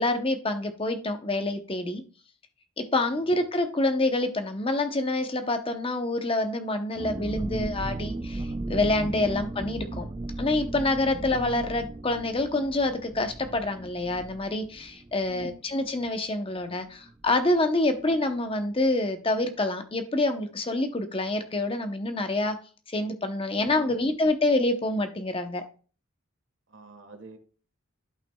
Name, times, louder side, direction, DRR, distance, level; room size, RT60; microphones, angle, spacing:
voice 1, 0.0-2.0 2.8-10.1 10.4-22.6 22.9-25.6, left 2 dB, 25° left, 7 dB, 0.8 m, -27 dB
sound 1, 6.9-16.4 16.6-16.7 17.1-17.3, right 2 dB, 20° right, 0.4 m, -36 dB
voice 2, 15.2-15.6 17.9-18.0 23.5-24.0 26.7-27.4, equal, 65° right, 8 dB, 1.4 m, -47 dB
12.0 x 5.8 x 2.3 m, 0.37 s
head